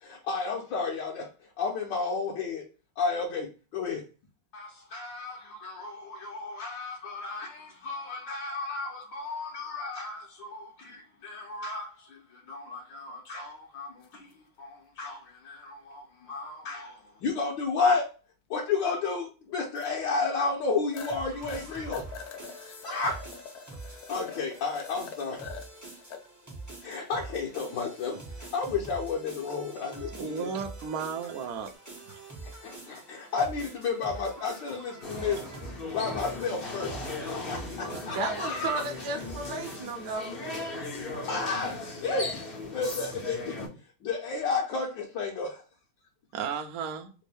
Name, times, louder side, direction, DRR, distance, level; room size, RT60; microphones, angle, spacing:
voice 1, 0.0-1.3 1.6-2.6 3.0-4.0 4.5-14.3 14.6-18.1 18.5-22.0 22.6-23.2 23.9-25.4 26.8-30.5 32.4-35.4 35.9-36.9 37.5-38.8 40.7-43.7 44.0-45.6, left 4 dB, 70° left, 1.3 m, -32 dB
sound 1, 14.0-14.2 16.6-16.7 19.8-19.9 20.4-20.5 20.9-21.2 21.5-26.2 26.7-26.8 27.5-28.0 31.5-31.7, left 7 dB, 85° left, 0.8 m, -44 dB
sound 2, 21.0-40.1, right 2 dB, 25° right, 0.3 m, -45 dB
voice 2, 30.2-31.7 46.3-47.1, right 6 dB, 75° right, 0.8 m, -34 dB
sound 3, 35.0-43.7, left 2 dB, 50° left, 0.6 m, -37 dB
voice 3, 38.0-40.4, right 3 dB, 60° right, 1.0 m, -33 dB
3.6 x 2.6 x 3.3 m
omnidirectional pair, 2.3 m